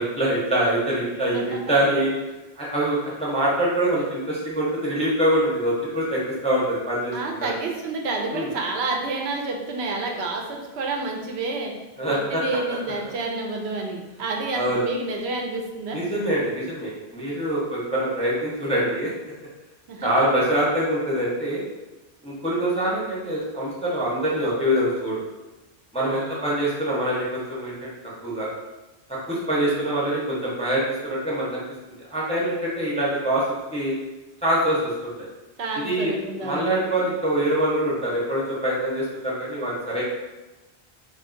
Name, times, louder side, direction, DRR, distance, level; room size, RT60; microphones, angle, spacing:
voice 1, 0.0-2.1 2.6-7.5 8.3-8.5 12.0-12.4 14.5-14.8 15.9-19.1 20.0-21.6 22.2-25.2 25.9-27.9 28.2-28.5 29.1-33.4 33.7-33.9 34.4-35.1 35.8-40.0, right 1 dB, 10° left, -6 dB, 0.5 m, -24 dB
voice 2, 7.1-11.7 12.1-16.0 19.9-20.2 26.1-26.5 35.6-36.8, right 3 dB, 80° right, 1 dB, 0.8 m, -29 dB
2.5 x 2.4 x 3.7 m, 1.1 s
omnidirectional pair, 1.1 m